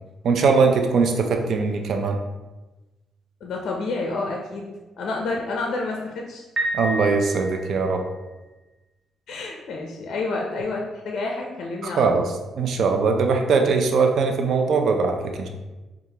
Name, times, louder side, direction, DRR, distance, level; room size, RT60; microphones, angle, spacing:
voice 1, 0.2-2.2 6.7-8.0 11.8-12.2 12.6-15.5, right 4 dB, 65° right, 4 dB, 0.5 m, -21 dB
voice 2, 3.4-4.7 5.0-6.5 9.3-12.1, left 3 dB, 65° left, 0 dB, 0.5 m, -29 dB
Piano, 6.6-8.0, right 1 dB, 35° right, 0.9 m, -29 dB
4.7 x 2.4 x 2.8 m, 1.1 s
cardioid pair, 90°, 0 cm